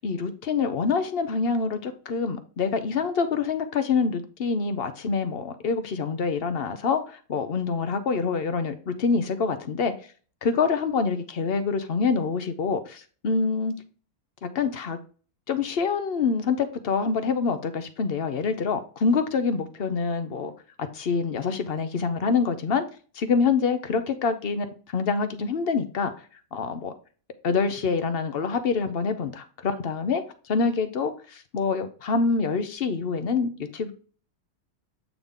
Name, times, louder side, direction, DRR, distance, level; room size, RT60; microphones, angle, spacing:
voice 1, 0.0-9.9 10.4-13.7 14.4-15.0 15.5-20.5 20.9-22.9 23.1-26.2 26.5-26.9 27.4-30.2 30.5-33.9, left 5 dB, 50° left, 0.8 m, -26 dB
8.5 x 4.0 x 3.6 m
omnidirectional pair, 1.7 m